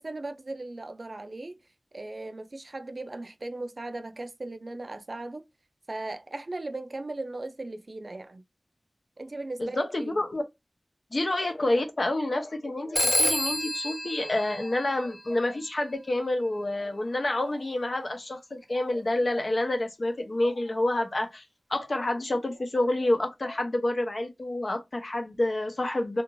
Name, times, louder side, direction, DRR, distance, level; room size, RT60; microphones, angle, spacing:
voice 1, 0.0-1.6 1.9-5.4 5.9-8.4 9.2-10.2 11.1-11.2, right 2 dB, 50° right, 0.3 m, -37 dB
voice 2, 9.6-10.4 11.1-21.4 21.7-26.2, left 1 dB, 55° left, 0.7 m, -28 dB
Telephone, 13.0-15.5, equal, 10° left, 0.5 m, -28 dB
2.5 x 2.5 x 3.0 m
wide cardioid pair, 60°, 0 cm